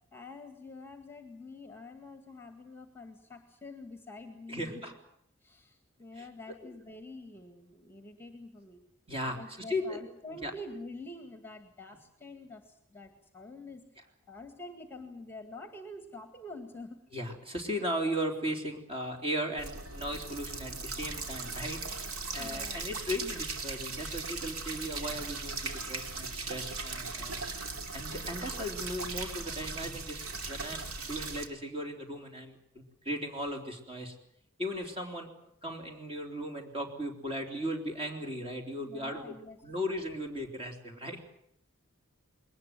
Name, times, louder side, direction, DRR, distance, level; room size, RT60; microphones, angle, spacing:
voice 1, 0.1-4.9 5.4-8.8 9.3-13.8 14.3-17.0 22.4-22.9 38.8-39.6, left 2 dB, 10° left, 6 dB, 1.9 m, -47 dB
voice 2, 4.5-4.9 6.2-6.3 6.6-6.7 9.1-9.4 9.7-10.0 10.3-10.5 17.1-21.8 22.3-27.5 27.9-34.2 34.6-35.3 35.6-39.4 39.6-41.2, equal, 25° right, 3 dB, 3.4 m, -37 dB
sound 1, 19.6-31.5, right 3 dB, 75° right, 2.7 m, -38 dB
21.5 x 19.0 x 9.3 m, 0.71 s
head